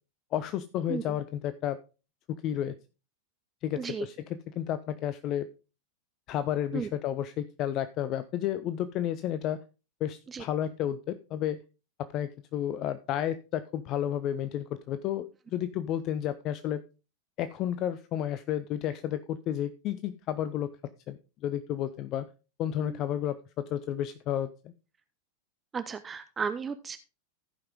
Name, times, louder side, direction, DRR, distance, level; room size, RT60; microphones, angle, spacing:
voice 1, 0.3-1.8 2.3-2.8 3.6-4.1 4.5-5.5 6.3-9.6 10.0-11.6 12.0-16.8 17.4-20.7 21.1-22.3 22.6-24.7, left 11 dB, 35° left, 13 dB, 0.5 m, -32 dB
voice 2, 3.7-4.1 6.7-6.9 10.3-10.4 22.8-23.0 25.7-27.0, right 6 dB, 20° right, 11 dB, 0.6 m, -34 dB
15.0 x 5.5 x 3.6 m, 0.32 s
figure-of-eight pair, 90°, 0 cm